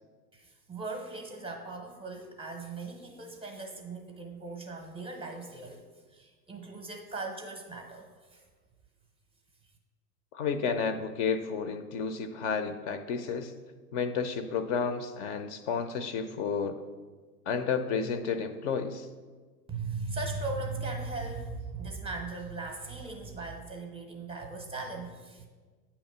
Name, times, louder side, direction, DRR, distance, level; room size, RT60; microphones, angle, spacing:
voice 1, 0.3-8.4 19.7-25.5, right 3 dB, 10° right, 2 dB, 0.6 m, -38 dB
voice 2, 10.3-13.5 13.9-16.8 17.5-19.1, left 6 dB, 50° left, 10 dB, 0.5 m, -31 dB
8.4 x 2.9 x 5.4 m, 1.4 s
hypercardioid pair, 105°, 47 cm